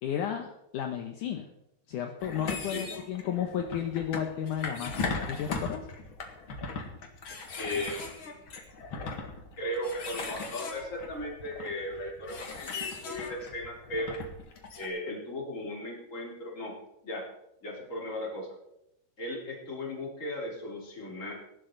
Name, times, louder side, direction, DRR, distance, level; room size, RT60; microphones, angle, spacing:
voice 1, 0.0-1.5 1.9-5.9, left 9 dB, 75° left, 4 dB, 1.9 m, -33 dB
sound 1, 2.2-14.9, left 4 dB, 45° left, 1.7 m, -38 dB
voice 2, 7.6-8.4 9.0-9.1 9.6-14.1 14.8-16.7 17.0-17.3 17.6-18.6 19.2-21.3, left 1 dB, 20° left, -2 dB, 3.2 m, -37 dB
19.5 x 11.5 x 3.9 m, 0.81 s
omnidirectional pair, 4.8 m